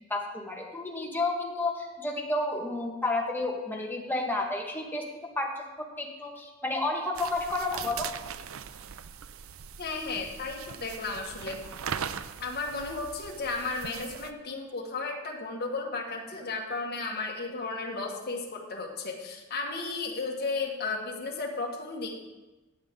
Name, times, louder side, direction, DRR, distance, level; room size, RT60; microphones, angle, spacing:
voice 1, 0.1-5.0 5.4-8.1, left 2 dB, 10° left, 0 dB, 1.6 m, -31 dB
sound 1, 7.1-14.3, right 7 dB, 85° right, 0.5 m, -40 dB
voice 2, 9.8-11.6 12.4-22.1, left 3 dB, 50° left, 0 dB, 1.8 m, -34 dB
15.0 x 8.9 x 3.8 m, 1.1 s
head